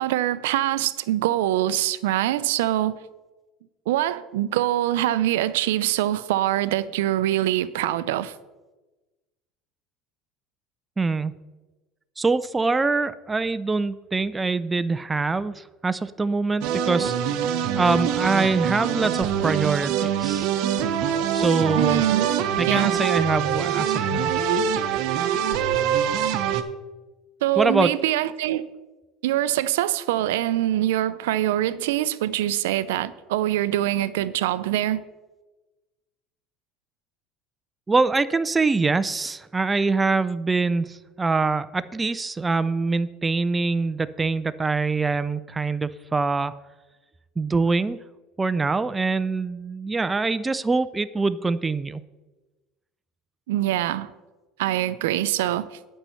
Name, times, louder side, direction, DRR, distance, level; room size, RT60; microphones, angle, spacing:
voice 1, 0.0-2.9 3.9-8.3 21.7-22.3 22.6-22.9 27.4-28.7 29.2-35.0 53.5-54.1 54.6-55.8, right 13 dB, 85° right, 0.4 m, -24 dB
voice 2, 11.0-11.3 12.2-19.9 20.2-20.5 21.3-22.1 22.6-24.3 27.6-27.9 37.9-46.5 47.4-48.0 48.4-52.0, right 3 dB, 15° right, 0.4 m, -24 dB
sound 1, 16.6-26.6, right 8 dB, 65° right, 0.8 m, -24 dB
8.9 x 5.5 x 6.9 m
supercardioid pair, 100°, 0 cm